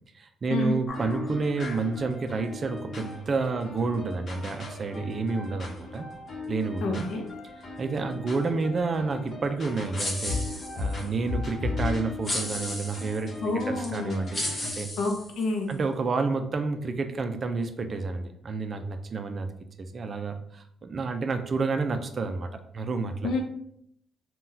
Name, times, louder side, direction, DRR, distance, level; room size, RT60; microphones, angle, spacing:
voice 1, 0.1-6.1 6.5-7.1 7.8-10.4 10.8-13.4 13.7-14.9 15.7-19.5 19.8-23.4, right 4 dB, 45° right, 7 dB, 0.4 m, -30 dB
sound 1, 0.9-14.7, left 3 dB, 50° left, 0.9 m, -37 dB
voice 2, 6.8-7.2 13.4-14.2 15.0-15.7 23.2-23.4, left 3 dB, 75° left, 3 dB, 0.6 m, -28 dB
sound 2, 10.0-11.1 12.2-13.2 13.8-13.9 14.3-15.7, left 1 dB, 25° left, 1.1 m, -34 dB
3.8 x 2.2 x 2.6 m, 0.71 s
cardioid pair, 90°, 0 cm